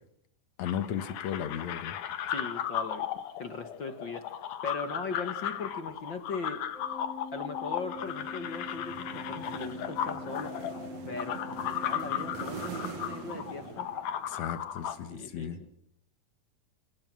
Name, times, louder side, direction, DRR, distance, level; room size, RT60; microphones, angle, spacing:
sound 1, 0.6-15.0, left 10 dB, 85° left, 2.9 m, -36 dB
voice 1, 0.6-2.0 14.3-15.6, left 9 dB, 65° left, 12 dB, 2.7 m, -35 dB
voice 2, 2.3-3.1 3.4-4.4 4.6-6.6 7.3-10.5 11.1-13.9 15.1-15.8, left 4 dB, 45° left, 9 dB, 1.9 m, -39 dB
Organ, 6.7-13.3, left 3 dB, 25° right, 2.5 m, -44 dB
sound 2, 7.9-14.5, right 6 dB, 60° right, 2.9 m, -44 dB
28.0 x 19.0 x 6.2 m, 0.69 s
omnidirectional pair, 3.6 m